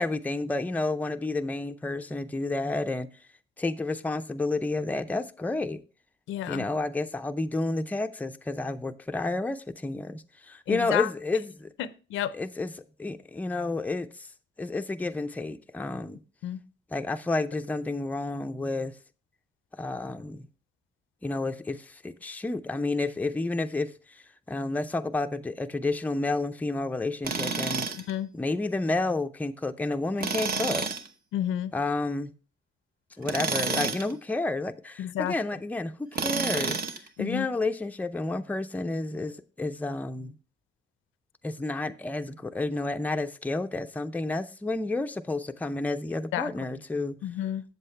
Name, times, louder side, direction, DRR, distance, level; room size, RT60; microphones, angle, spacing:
voice 1, 0.0-3.1 3.6-5.8 6.5-11.7 12.3-12.7 13.0-14.3 14.6-16.2 16.9-19.0 19.8-20.5 21.2-27.9 28.3-30.9 31.7-32.3 33.2-36.8 37.2-40.4 41.4-47.2, left 2 dB, 10° left, 0.5 m, -30 dB
voice 2, 6.3-6.7 10.7-11.1 11.8-12.3 16.4-16.6 28.1-28.3 31.3-31.7 35.0-35.3 37.2-37.5 46.3-46.5 47.2-47.6, left 11 dB, 85° left, 0.5 m, -30 dB
Tools, 27.2-28.1 30.2-31.1 33.2-34.1 36.1-37.1, right 4 dB, 50° right, 1.0 m, -29 dB
7.7 x 7.5 x 3.2 m
cardioid pair, 90°, 20 cm